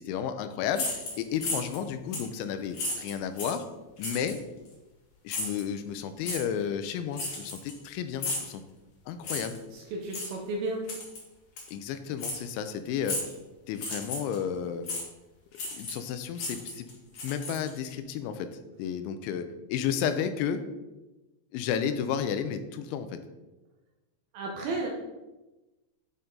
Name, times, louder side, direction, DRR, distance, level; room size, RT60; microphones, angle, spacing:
voice 1, 0.0-3.6 4.0-4.4 5.2-8.6 9.1-9.6 11.7-13.2 13.7-14.9 15.7-16.9 17.2-18.5 18.8-20.6 21.5-23.1, left 8 dB, 85° left, 9 dB, 3.0 m, -32 dB
sound 1, 0.7-1.8 2.1-2.3 2.7-3.6 4.0-4.4 5.3-5.6 6.2-6.4 7.1-7.9 8.2-8.5 9.2-9.6 10.1-10.3 10.9-11.2 11.6-11.7 12.2-12.4 13.0-13.4 13.7-14.4 14.9-15.0 15.5-16.1 16.3-17.9, left 2 dB, 60° left, 1.6 m, -34 dB
voice 2, 9.7-10.8 24.3-24.9, right 2 dB, 75° right, 0 dB, 2.3 m, -33 dB
9.3 x 5.4 x 3.7 m, 1.1 s
omnidirectional pair, 5.3 m